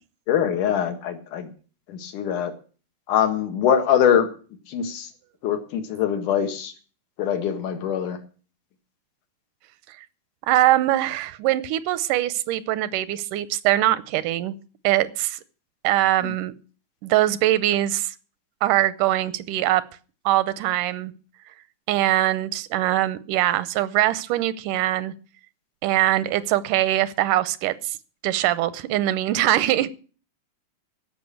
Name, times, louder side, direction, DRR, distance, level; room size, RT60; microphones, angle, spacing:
voice 1, 0.3-1.5 1.9-2.5 3.1-4.3 4.7-5.1 5.4-6.7 7.2-8.2 16.2-16.3, left 9 dB, 80° left, 7 dB, 3.1 m, -23 dB
voice 2, 10.5-14.6 14.8-15.4 15.8-16.5 17.0-18.1 18.6-19.8 20.3-21.1 21.9-25.1 25.8-28.0 28.2-29.9, right 14 dB, 85° right, 16 dB, 2.3 m, -22 dB
15.0 x 6.0 x 8.5 m, 0.39 s
omnidirectional pair, 3.6 m